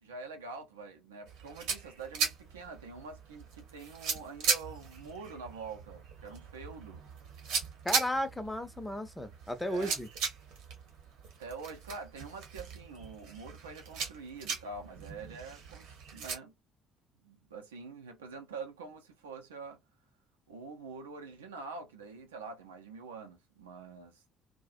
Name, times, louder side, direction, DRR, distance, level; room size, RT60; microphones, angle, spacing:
voice 1, 0.0-7.0 9.6-10.0 11.4-16.5 17.2-19.8 20.5-24.2, right 4 dB, 80° right, 0.5 m, -45 dB
sound 1, 1.3-16.4, right 5 dB, 65° right, 0.9 m, -38 dB
voice 2, 7.8-10.1, equal, 10° left, 0.6 m, -34 dB
2.3 x 2.1 x 2.5 m
figure-of-eight pair, 50°, 0 cm